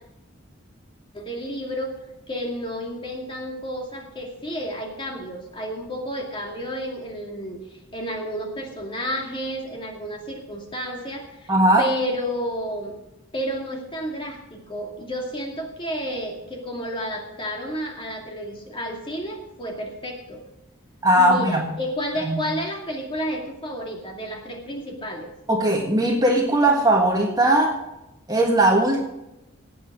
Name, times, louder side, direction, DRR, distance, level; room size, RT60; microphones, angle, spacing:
voice 1, 1.1-2.0 2.3-7.6 7.9-11.5 11.8-12.9 13.3-20.4 21.2-25.3, equal, 25° left, 1 dB, 2.4 m, -31 dB
voice 2, 11.5-11.9 21.0-21.7 22.2-22.4 25.5-27.8 28.3-29.0, right 1 dB, 20° right, 1 dB, 1.6 m, -19 dB
17.5 x 8.5 x 4.9 m, 0.91 s
head